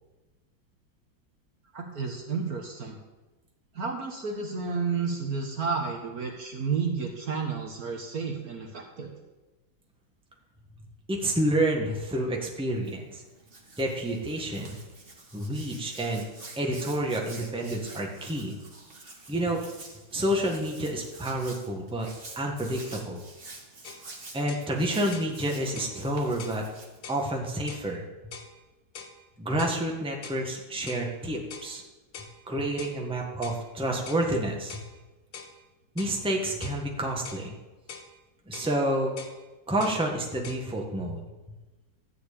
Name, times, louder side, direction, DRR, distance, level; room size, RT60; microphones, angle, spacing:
voice 1, 1.7-3.0 3.7-9.1, right 5 dB, 50° right, 1 dB, 1.7 m, -31 dB
voice 2, 11.1-13.2 13.8-14.8 15.3-16.2 16.6-18.6 19.3-19.6 20.1-22.1 22.3-23.2 24.3-26.6 27.1-28.0 29.4-31.8 32.4-34.8 35.9-37.5 38.5-39.1 39.7-41.2, right 1 dB, 5° right, 0 dB, 1.4 m, -29 dB
Hands, 12.7-27.4, right 2 dB, 30° right, 1.5 m, -48 dB
sound 1, 23.8-24.1 24.5-24.7 25.1-25.3 25.8-26.0 26.4-26.6 27.0-27.2 27.7-27.9 28.3-28.5 28.9-29.2 29.6-29.8 30.2-30.4 30.9-31.1 31.5-31.7 32.1-32.4 32.8-33.0 33.4-33.6 34.1-34.3 34.7-34.9 35.3-35.5 36.0-36.2 36.6-36.8 37.2-37.5 37.9-38.1 38.5-38.7 39.2-39.4 39.8-40.0 40.4-40.6, left 6 dB, 80° left, 1.8 m, -43 dB
13.5 x 4.8 x 8.6 m, 1.1 s
omnidirectional pair, 2.2 m